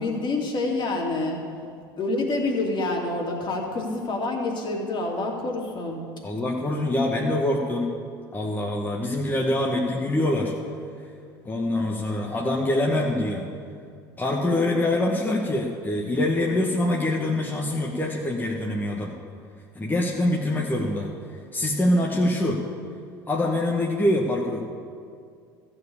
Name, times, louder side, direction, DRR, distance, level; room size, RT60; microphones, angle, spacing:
voice 1, 0.0-1.4 2.0-6.0, left 2 dB, 40° left, 0 dB, 2.5 m, -27 dB
voice 2, 6.2-7.9 8.3-10.5 11.4-13.5 14.2-19.1 19.7-21.1 21.5-22.6 23.3-24.6, left 1 dB, 15° left, -2 dB, 1.3 m, -24 dB
14.0 x 4.9 x 8.5 m, 2.3 s
hypercardioid pair, 75°, 12 cm